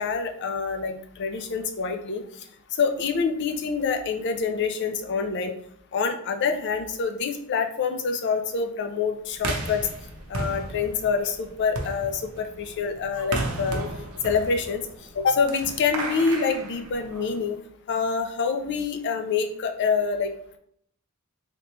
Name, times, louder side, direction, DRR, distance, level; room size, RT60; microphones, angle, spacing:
voice 1, 0.0-2.2 2.7-5.5 5.9-9.9 10.3-13.8 14.2-14.8 15.1-17.6 17.9-20.6, left 5 dB, 55° left, 6 dB, 0.4 m, -26 dB
sound 1, 9.4-17.5, right 2 dB, 80° right, 0.6 m, -34 dB
3.3 x 3.0 x 2.9 m, 0.66 s
head